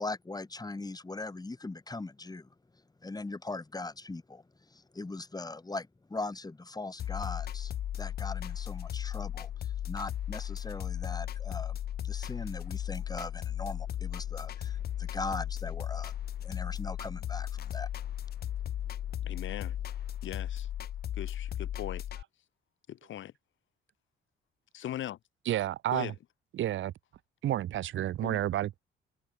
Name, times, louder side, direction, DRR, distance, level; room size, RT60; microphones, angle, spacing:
voice 1, 0.0-2.5 3.0-17.9, left 3 dB, 20° left, 6.5 m, -40 dB
sound 1, 7.0-22.2, left 11 dB, 50° left, 0.5 m, -36 dB
voice 2, 19.2-20.7 21.1-22.0 22.9-23.3 24.7-25.2 25.9-26.2 28.2-28.4, left 12 dB, 75° left, 5.6 m, -40 dB
voice 3, 25.5-26.1 26.5-26.9 27.4-28.8, right 12 dB, 75° right, 2.2 m, -30 dB
cardioid pair, 90°, 20 cm